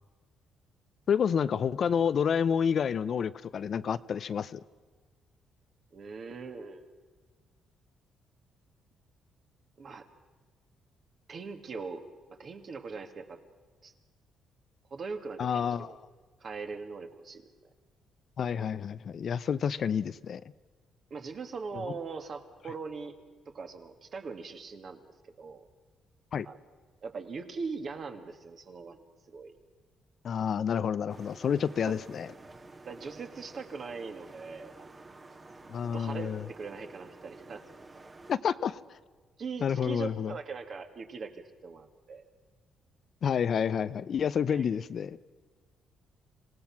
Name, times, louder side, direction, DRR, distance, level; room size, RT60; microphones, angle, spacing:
voice 1, 1.1-4.6 15.4-16.0 18.4-20.4 21.8-21.9 26.3-26.5 30.2-32.3 35.7-36.5 38.3-39.0 39.6-40.3 43.2-45.2, left 7 dB, 55° left, 15 dB, 0.6 m, -29 dB
voice 2, 5.9-6.9 9.8-10.1 11.3-12.0 12.3-13.4 13.8-13.9 14.9-16.0 16.4-17.5 21.1-23.2 23.5-25.0 25.4-25.7 26.4-26.6 27.0-29.5 32.8-35.0 35.8-37.6 39.4-42.3 44.5-44.7, right 4 dB, 50° right, 6 dB, 2.0 m, -41 dB
sound 1, 31.1-38.4, right 2 dB, 25° right, 1.5 m, -51 dB
26.0 x 17.5 x 5.9 m, 1.4 s
cardioid pair, 90°, 0 cm